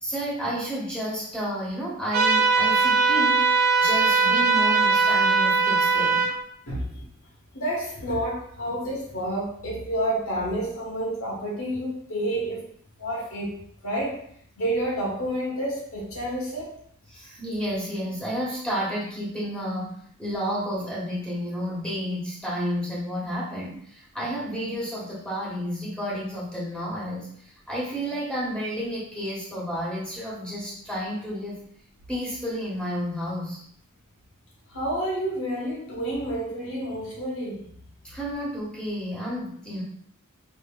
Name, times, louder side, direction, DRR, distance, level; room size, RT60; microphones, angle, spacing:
voice 1, 0.0-6.2 17.1-31.6 32.1-33.6 38.0-39.8, equal, 5° left, -7 dB, 1.4 m, -31 dB
sound 1, 2.1-6.3, right 4 dB, 45° right, 0.8 m, -20 dB
voice 2, 6.7-7.0 7.5-12.6 13.0-13.6 13.8-14.2 14.6-16.7 34.7-37.7, right 1 dB, 75° left, -3 dB, 1.4 m, -29 dB
5.1 x 3.1 x 2.3 m, 0.65 s
head